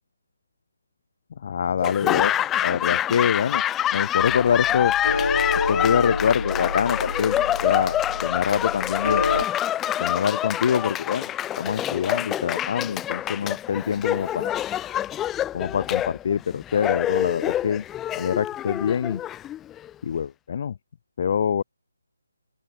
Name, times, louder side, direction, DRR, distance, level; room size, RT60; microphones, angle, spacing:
voice 1, 1.4-2.3 2.6-3.6 3.9-4.9 5.7-7.4 7.6-9.2 10.0-11.3 11.6-14.5 15.5-17.8 18.1-19.2 20.0-20.7 21.2-21.6, left 7 dB, 40° left, 2.7 m, -25 dB
Laughter / Applause, 1.8-19.9, left 12 dB, 10° left, 1.9 m, -26 dB
sound 1, 4.2-9.5, left 3 dB, 65° left, 2.9 m, -29 dB
open air
figure-of-eight pair, 150°, 0 cm